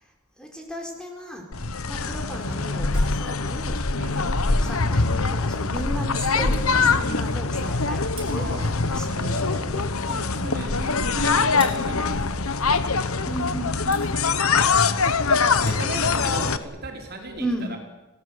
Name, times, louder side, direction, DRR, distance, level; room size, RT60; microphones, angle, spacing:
voice 1, 0.4-1.5 1.9-9.8 10.4-10.8 13.2-14.2 17.4-17.7, right 1 dB, 5° left, 1 dB, 4.1 m, -35 dB
sound 1, 1.5-16.6, left 4 dB, 70° left, 1.3 m, -23 dB
sound 2, 2.9-3.4 6.1-6.2 6.5-6.7 8.1-8.7 11.6-12.0 13.9-14.1 15.4-16.2, right 2 dB, 25° right, 5.8 m, -39 dB
voice 2, 3.9-4.3 8.3-8.7 9.1-9.7 10.1-12.7 13.2-13.6 15.2-17.8, right 2 dB, 45° right, 2 dB, 4.7 m, -37 dB
29.0 x 18.5 x 8.1 m, 1.1 s
head